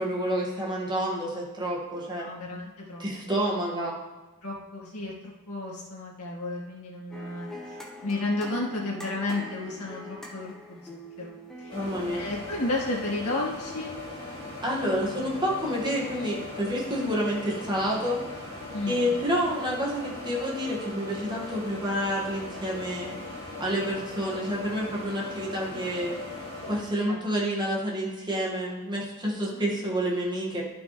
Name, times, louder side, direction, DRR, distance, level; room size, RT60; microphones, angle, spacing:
voice 1, 0.0-2.3 3.0-4.0 11.7-12.3 14.6-18.2 18.9-23.2 23.6-26.2 26.7-30.6, equal, 20° right, -5 dB, 2.1 m, -29 dB
voice 2, 2.2-3.0 3.4-3.5 4.4-14.0 18.7-19.1 25.7-26.0 27.0-27.2 29.5-29.6, left 2 dB, 85° left, -4 dB, 2.2 m, -33 dB
sound 1, 7.1-12.2, left 1 dB, ahead, 1.0 m, -43 dB
sound 2, 11.7-26.8, left 2 dB, 25° left, 2.4 m, -39 dB
12.0 x 5.9 x 3.4 m, 1.2 s
head